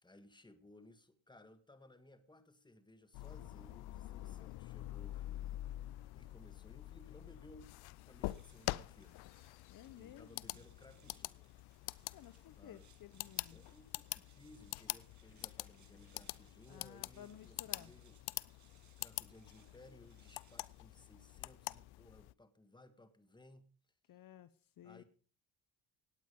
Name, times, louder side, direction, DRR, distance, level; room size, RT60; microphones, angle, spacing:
voice 1, 0.0-5.8 6.1-7.8 8.1-9.2 10.0-11.5 12.6-12.9 13.5-18.2 19.0-23.7 24.8-25.0, left 1 dB, 10° left, 1.9 m, -61 dB
sound 1, 3.1-22.3, left 18 dB, 90° left, 0.6 m, -46 dB
voice 2, 4.2-4.5 9.7-10.7 12.1-13.6 16.7-17.9 24.1-25.0, left 11 dB, 60° left, 1.0 m, -56 dB
sound 2, 8.1-21.8, right 8 dB, 50° right, 1.7 m, -71 dB
sound 3, 15.1-20.6, left 4 dB, 35° left, 2.9 m, -75 dB
17.5 x 9.3 x 5.3 m
cardioid pair, 85°, 37 cm